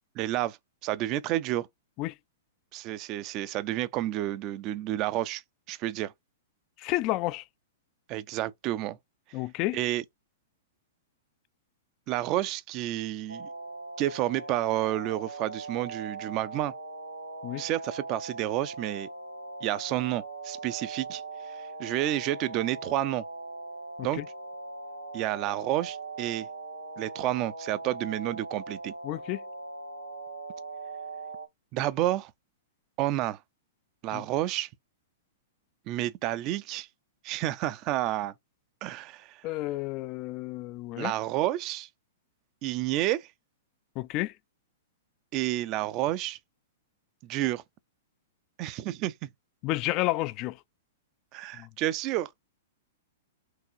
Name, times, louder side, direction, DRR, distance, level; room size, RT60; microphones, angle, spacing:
voice 1, 0.2-0.6 0.8-1.7 2.7-5.4 5.7-6.1 8.1-9.0 9.7-10.0 12.1-13.5 14.0-16.7 17.6-19.1 19.6-21.2 21.5-23.2 24.0-24.2 25.1-26.5 27.0-28.9 31.7-32.3 33.0-33.4 34.0-34.7 35.9-36.9 37.2-38.3 38.8-39.4 41.0-41.9 42.6-43.3 45.3-46.4 47.2-47.6 48.6-49.3 51.3-52.3, right 14 dB, 35° right, 0.4 m, -30 dB
voice 2, 6.8-7.4 9.3-9.8 17.4-17.6 24.0-24.3 29.0-29.4 34.1-34.2 39.4-41.1 44.0-44.3 49.6-50.6 51.6-51.7, left 18 dB, 35° left, 0.3 m, -31 dB
sound 1, 13.3-31.5, right 3 dB, 90° right, 0.7 m, -40 dB
4.7 x 3.0 x 2.6 m
figure-of-eight pair, 105°, 0 cm